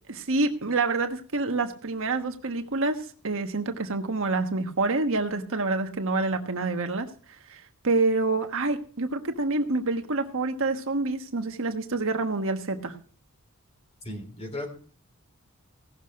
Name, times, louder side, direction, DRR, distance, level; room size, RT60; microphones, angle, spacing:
voice 1, 0.1-7.1 7.5-12.9, right 3 dB, 65° right, 6 dB, 1.3 m, -27 dB
voice 2, 14.0-14.7, left 1 dB, 30° left, 4 dB, 3.4 m, -35 dB
17.0 x 6.5 x 5.7 m, 0.43 s
head